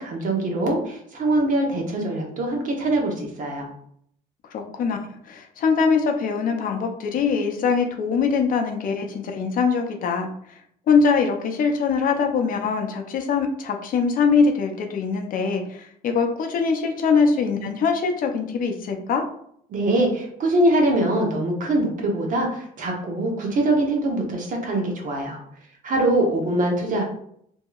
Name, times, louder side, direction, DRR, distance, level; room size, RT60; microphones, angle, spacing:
voice 1, 0.0-3.7 19.7-25.4 25.8-27.0, right 1 dB, 50° right, 1 dB, 0.9 m, -23 dB
voice 2, 4.5-5.0 5.2-10.6 10.9-19.2, left 5 dB, 55° left, 4 dB, 0.5 m, -22 dB
2.8 x 2.7 x 2.3 m, 0.67 s
cardioid pair, 110°, 17 cm